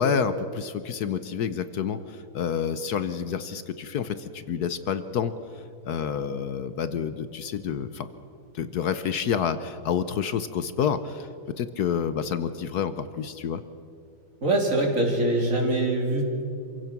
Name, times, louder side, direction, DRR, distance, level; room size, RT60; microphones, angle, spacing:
voice 1, 0.0-5.3 5.8-8.1 8.5-11.3 11.6-13.6, left 7 dB, 65° left, 12 dB, 1.0 m, -28 dB
voice 2, 14.4-16.4, right 1 dB, 35° right, 1 dB, 3.3 m, -23 dB
27.0 x 16.5 x 6.0 m, 2.7 s
omnidirectional pair, 2.4 m